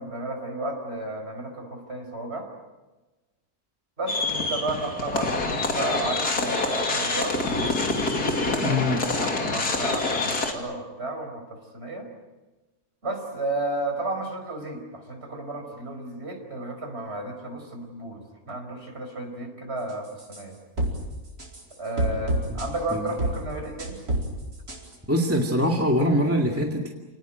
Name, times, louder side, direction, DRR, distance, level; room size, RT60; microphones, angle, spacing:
voice 1, 0.0-2.5 4.0-7.4 8.3-12.1 13.0-18.2 18.5-20.5 21.8-24.0, right 2 dB, 35° right, 3 dB, 5.3 m, -33 dB
sound 1, 4.1-10.5, left 3 dB, 55° left, 3.1 m, -26 dB
voice 2, 8.6-9.1 22.5-22.6 22.9-23.1 25.1-26.9, equal, 5° right, 1 dB, 2.0 m, -23 dB
sound 2, 20.2-20.4 20.8-21.0 21.4-21.6 22.0-22.9 23.2-23.4 23.8-24.3 24.7-24.9, right 1 dB, 50° right, 5.2 m, -27 dB
29.5 x 19.5 x 9.2 m, 1.2 s
omnidirectional pair, 2.0 m